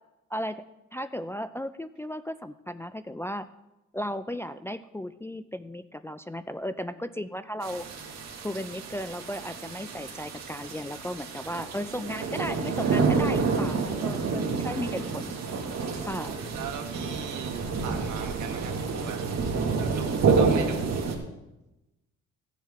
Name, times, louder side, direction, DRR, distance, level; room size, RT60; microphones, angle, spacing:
voice 1, 0.3-0.6 0.9-3.5 3.9-7.9 8.4-15.3 16.0-16.3, equal, 10° left, 11 dB, 0.4 m, -35 dB
sound 1, 7.6-21.2, right 4 dB, 60° right, 2.0 m, -29 dB
voice 2, 14.6-14.9 16.5-19.2 19.8-20.8, right 7 dB, 75° right, 4 dB, 1.7 m, -39 dB
16.0 x 7.4 x 3.6 m, 0.95 s
cardioid pair, 90°, 30 cm